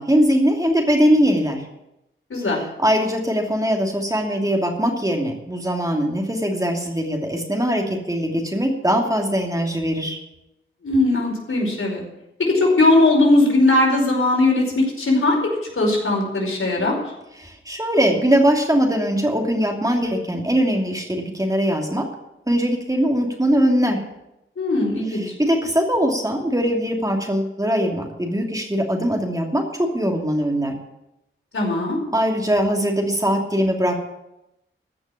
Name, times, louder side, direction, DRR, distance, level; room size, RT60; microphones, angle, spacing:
voice 1, 0.0-1.6 2.6-10.2 17.4-22.1 22.5-24.0 25.1-30.7 32.1-34.0, equal, 15° right, 1 dB, 2.8 m, -21 dB
voice 2, 10.8-12.0 12.4-15.4 15.8-17.0 24.6-25.2 31.5-32.0, left 2 dB, 80° left, -1 dB, 5.0 m, -19 dB
15.0 x 6.2 x 9.9 m, 0.87 s
wide cardioid pair, 70°, 21 cm